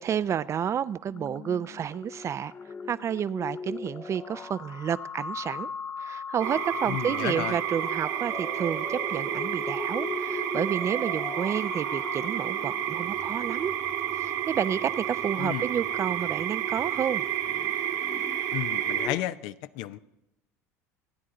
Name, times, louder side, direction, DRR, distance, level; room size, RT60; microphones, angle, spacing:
voice 1, 0.0-2.5 2.9-5.7 6.0-13.7 14.1-17.2, right 8 dB, 35° right, 0.5 m, -30 dB
sound 1, 1.1-19.3, left 5 dB, 35° left, 1.4 m, -40 dB
sound 2, 6.4-19.1, right 10 dB, 65° right, 1.5 m, -30 dB
voice 2, 6.9-7.6 15.4-15.7 18.5-20.0, left 14 dB, 65° left, 0.6 m, -32 dB
28.0 x 9.8 x 3.8 m
hypercardioid pair, 75°, 8 cm